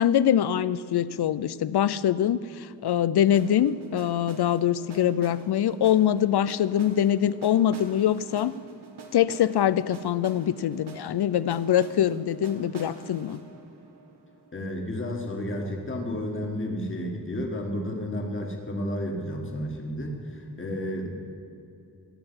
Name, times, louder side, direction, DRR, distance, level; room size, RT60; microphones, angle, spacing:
voice 1, 0.0-8.5 9.1-13.4, left 10 dB, 80° left, 17 dB, 0.5 m, -24 dB
sound 1, 3.3-15.2, right 3 dB, 85° right, 1.4 m, -47 dB
voice 2, 14.5-21.1, equal, 30° left, 1 dB, 1.8 m, -32 dB
15.0 x 6.7 x 9.6 m, 2.7 s
wide cardioid pair, 130°, 39 cm